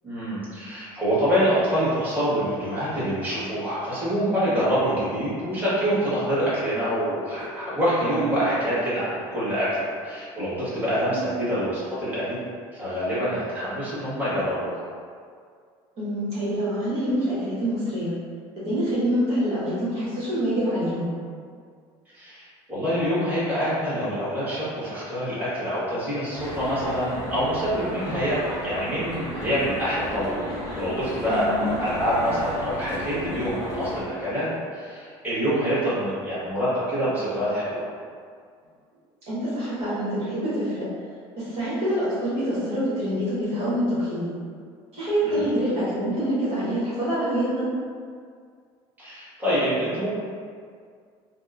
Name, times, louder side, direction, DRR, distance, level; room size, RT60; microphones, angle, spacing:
voice 1, 0.0-12.3 12.7-14.8 22.1-30.3 30.8-37.9 45.2-45.5 49.0-50.1, equal, 15° right, -12 dB, 1.4 m, -26 dB
voice 2, 11.1-11.4 16.0-18.1 18.6-21.1 31.3-31.8 35.4-35.7 39.3-40.9 41.4-44.3 44.9-47.6, equal, 55° right, -11 dB, 1.2 m, -26 dB
sound 1, 26.3-34.0, left 1 dB, 30° left, 0.7 m, -34 dB
2.8 x 2.0 x 2.4 m, 2.1 s
supercardioid pair, 95°, 12 cm